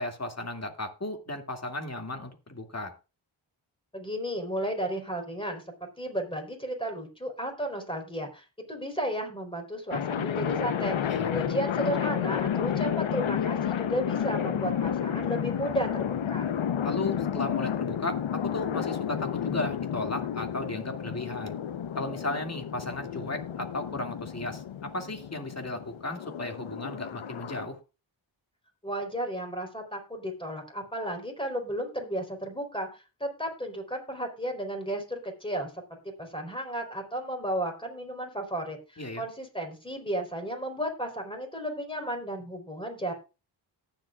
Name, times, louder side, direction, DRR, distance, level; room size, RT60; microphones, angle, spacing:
voice 1, 0.0-2.9 11.1-11.4 16.8-21.5 21.9-27.8 39.0-39.2, left 2 dB, 30° left, 4 dB, 2.4 m, -35 dB
voice 2, 3.9-16.6 28.8-43.1, right 1 dB, 10° left, 3 dB, 4.2 m, -34 dB
sound 1, 9.9-27.7, left 9 dB, 75° left, 1.0 m, -31 dB
18.5 x 7.7 x 2.4 m, 0.30 s
cardioid pair, 45°, 48 cm